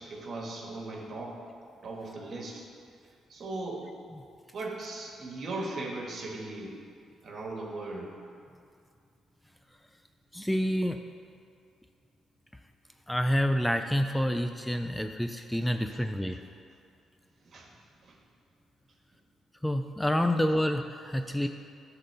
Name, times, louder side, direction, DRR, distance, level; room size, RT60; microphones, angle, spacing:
voice 1, 0.0-1.4 1.8-2.7 3.3-3.8 4.5-6.8 7.2-8.1 15.9-16.0 17.5-17.7 18.0-18.1, right 2 dB, 55° right, -1 dB, 1.7 m, -38 dB
voice 2, 10.3-11.0 13.1-16.4 19.6-21.5, equal, 5° left, 7 dB, 0.4 m, -28 dB
10.0 x 3.9 x 6.7 m, 2.3 s
supercardioid pair, 70°, 0 cm